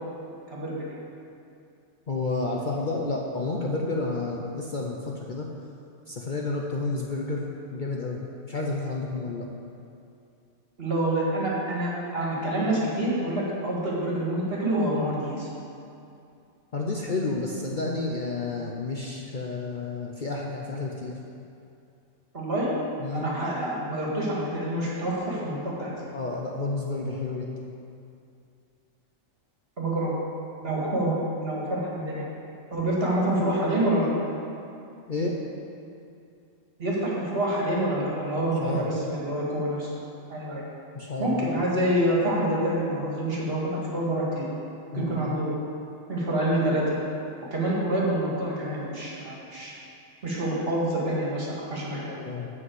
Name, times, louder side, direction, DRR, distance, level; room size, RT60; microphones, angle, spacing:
voice 1, 0.5-1.0 10.8-15.5 22.3-22.7 23.1-26.1 29.8-30.1 30.6-32.3 32.7-34.1 36.8-39.9 40.3-40.6 41.2-44.5 44.9-45.5 46.1-46.8 47.5-49.7 50.2-52.0, right 1 dB, 50° right, -5 dB, 2.2 m, -27 dB
voice 2, 2.1-5.5 6.1-7.4 7.7-8.2 8.5-9.5 16.7-21.2 23.0-23.3 26.1-27.6 35.1-35.3 38.6-38.9 40.9-41.6 44.9-45.2 52.0-52.5, left 3 dB, 45° left, -1 dB, 0.8 m, -30 dB
7.7 x 6.1 x 7.8 m, 2.6 s
omnidirectional pair, 1.3 m